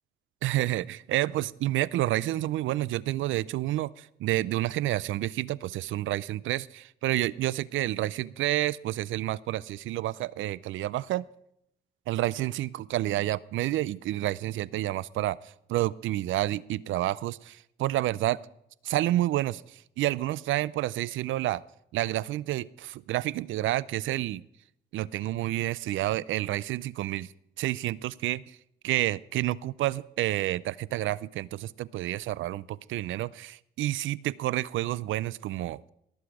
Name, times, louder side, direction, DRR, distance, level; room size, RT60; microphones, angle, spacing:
voice 1, 0.4-11.2 12.1-18.4 18.8-21.6 21.9-24.4 24.9-27.3 27.6-28.6 28.8-35.8, right 15 dB, 75° right, 21 dB, 0.4 m, -29 dB
18.5 x 8.0 x 4.8 m, 0.77 s
cardioid pair, 90°, 20 cm